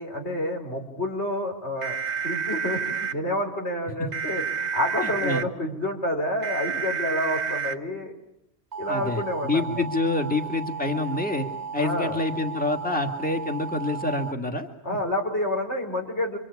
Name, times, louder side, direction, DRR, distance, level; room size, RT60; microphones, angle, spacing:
voice 1, 0.0-2.0 2.2-8.1 8.8-9.8 11.8-12.2 14.8-16.4, left 1 dB, 75° left, 2 dB, 5.1 m, -29 dB
sound 1, 1.8-3.1 4.1-5.4 6.4-7.7 8.7-14.3, right 6 dB, 40° right, 1.3 m, -31 dB
voice 2, 5.0-5.4 8.9-11.5 11.7-15.0, left 2 dB, 5° left, 4 dB, 2.2 m, -27 dB
26.5 x 25.5 x 8.7 m, 0.76 s
omnidirectional pair, 1.1 m